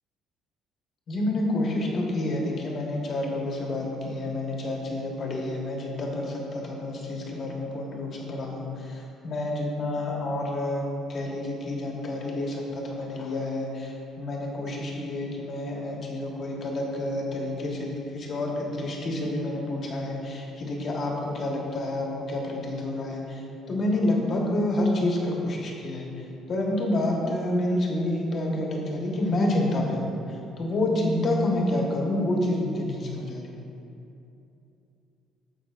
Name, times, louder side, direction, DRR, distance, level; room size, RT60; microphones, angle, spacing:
voice 1, 1.1-33.4, left 1 dB, 40° left, -1 dB, 1.2 m, -28 dB
14.0 x 5.3 x 2.5 m, 2.8 s
cardioid pair, 145°, 0 cm